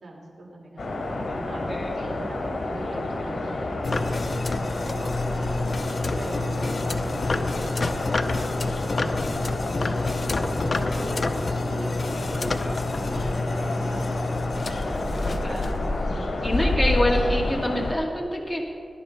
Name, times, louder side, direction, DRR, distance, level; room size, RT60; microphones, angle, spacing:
voice 1, 0.0-4.2 4.5-5.6 5.9-14.0 14.9-15.6 16.1-16.7, right 1 dB, 80° right, -2 dB, 3.4 m, -41 dB
sound 1, 0.8-17.9, left 2 dB, 60° left, 2.6 m, -29 dB
sound 2, 3.8-16.0, left 2 dB, 45° left, 0.7 m, -29 dB
voice 2, 15.2-15.7 16.4-18.7, left 1 dB, 5° left, -2 dB, 1.8 m, -26 dB
19.0 x 10.5 x 4.4 m, 2.2 s
wide cardioid pair, 135°, 0 cm